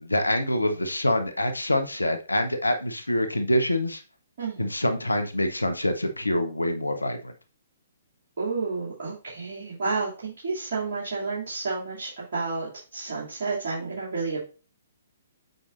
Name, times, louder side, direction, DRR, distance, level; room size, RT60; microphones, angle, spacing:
voice 1, 0.0-4.0 4.6-7.3, left 1 dB, 85° left, 8 dB, 0.9 m, -25 dB
voice 2, 8.4-14.4, right 4 dB, 50° right, -8 dB, 2.5 m, -31 dB
7.8 x 5.3 x 2.5 m, 0.35 s
figure-of-eight pair, 125°, 0 cm